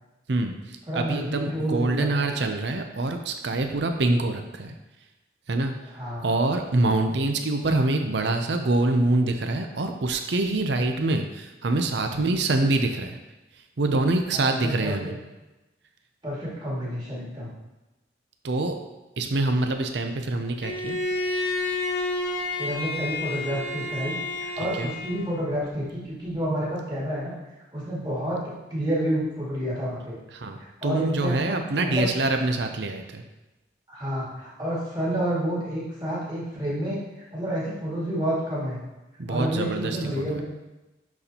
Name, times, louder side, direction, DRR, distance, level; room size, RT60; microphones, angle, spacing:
voice 1, 0.3-4.7 5.5-5.7 6.2-13.2 13.8-15.1 18.4-18.8 19.2-21.0 24.8-24.9 30.3-33.2 39.2-40.4, right 2 dB, 70° right, 5 dB, 0.6 m, -25 dB
voice 2, 0.9-2.3 5.9-6.3 14.3-14.9 16.2-17.5 22.6-27.3 27.7-30.2 30.6-32.1 33.9-37.0 37.3-38.8 39.3-40.4, right 1 dB, 25° right, -7 dB, 2.3 m, -29 dB
Bowed string instrument, 20.6-25.4, left 2 dB, 65° left, 0.9 m, -30 dB
10.5 x 4.2 x 2.9 m, 1.0 s
head